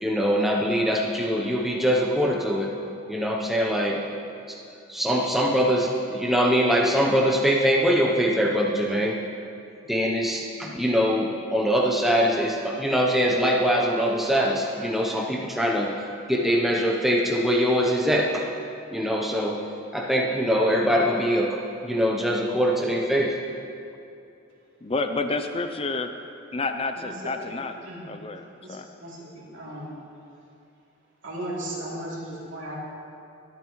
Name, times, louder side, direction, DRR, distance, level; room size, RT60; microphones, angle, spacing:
voice 1, 0.0-2.8 3.1-4.0 4.5-4.6 4.9-9.2 9.9-16.0 16.3-18.5 18.9-19.6 19.9-23.4, equal, ahead, -2 dB, 0.7 m, -23 dB
voice 2, 24.8-26.2 26.5-27.8 28.1-28.9, left 3 dB, 25° left, 7 dB, 0.4 m, -29 dB
voice 3, 27.0-27.6 27.8-28.0 28.5-29.9 31.2-32.7, right 1 dB, 65° right, -6 dB, 3.0 m, -36 dB
22.5 x 8.8 x 3.1 m, 2.5 s
head